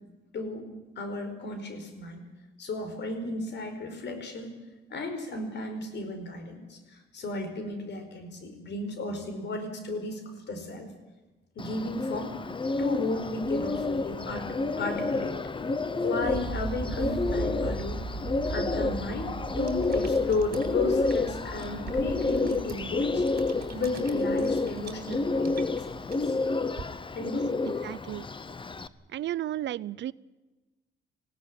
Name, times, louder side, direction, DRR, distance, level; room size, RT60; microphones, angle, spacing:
voice 1, 0.3-0.7 1.0-2.2 2.6-4.5 4.9-10.9 11.5-12.4 12.8-15.4 15.9-18.0 18.5-23.3 23.7-26.3 27.1-27.5, left 2 dB, 60° left, 7 dB, 4.8 m, -34 dB
Bird, 11.6-28.9, left 3 dB, 25° left, 1.0 m, -30 dB
sound 1, 13.4-27.3, right 2 dB, 15° right, 4.5 m, -40 dB
sound 2, 19.6-26.8, right 6 dB, 50° right, 3.5 m, -46 dB
voice 2, 27.7-28.3 29.1-30.1, right 13 dB, 65° right, 20 dB, 0.6 m, -34 dB
19.5 x 16.5 x 10.0 m, 1.2 s
cardioid pair, 90°, 20 cm